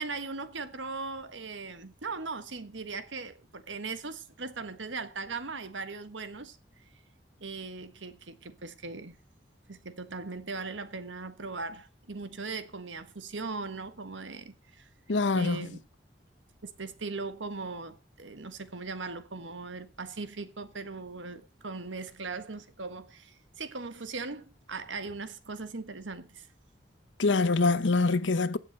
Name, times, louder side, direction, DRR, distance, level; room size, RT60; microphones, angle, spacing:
voice 1, 0.0-6.6 7.4-9.2 9.7-14.9 15.3-15.8 16.6-26.5, right 4 dB, 90° right, 1.4 m, -39 dB
voice 2, 15.1-15.7 27.2-28.6, left 3 dB, 80° left, 0.8 m, -25 dB
16.0 x 7.4 x 5.3 m
head